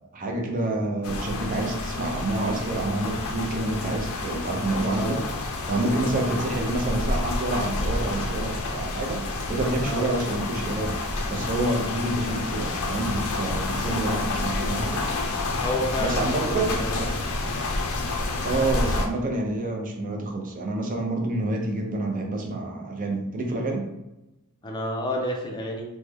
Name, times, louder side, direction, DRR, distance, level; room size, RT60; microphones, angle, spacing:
voice 1, 0.1-5.2 5.7-11.0 11.3-15.1 16.0-17.1 18.4-23.9, right 2 dB, 40° right, 2 dB, 0.5 m, -28 dB
sound 1, 1.0-19.1, left 2 dB, 75° left, 0.5 m, -29 dB
voice 2, 15.6-17.0 24.6-25.8, left 1 dB, 20° left, 0 dB, 0.4 m, -30 dB
3.1 x 2.1 x 3.4 m, 0.93 s
head